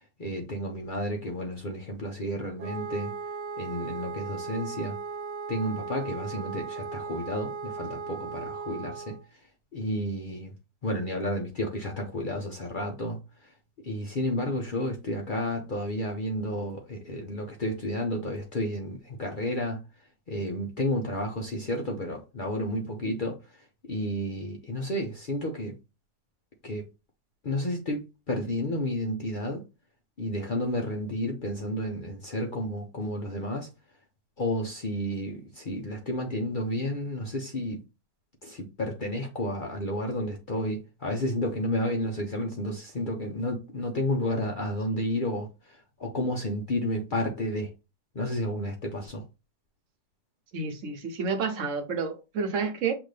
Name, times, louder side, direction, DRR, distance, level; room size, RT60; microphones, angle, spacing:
voice 1, 0.0-3.1 3.6-5.0 5.5-9.4 9.7-10.5 10.8-13.5 13.8-19.8 20.3-25.7 26.6-26.9 27.4-29.6 30.2-33.7 34.4-37.8 38.4-47.7 48.1-49.2, left 1 dB, 55° left, 0.5 m, -31 dB
Wind instrument woodwind instrument, 2.6-9.2, right 5 dB, 90° right, 1.5 m, -37 dB
voice 2, 50.5-52.9, right 5 dB, 55° right, 1.1 m, -30 dB
5.9 x 2.6 x 3.2 m
omnidirectional pair, 1.8 m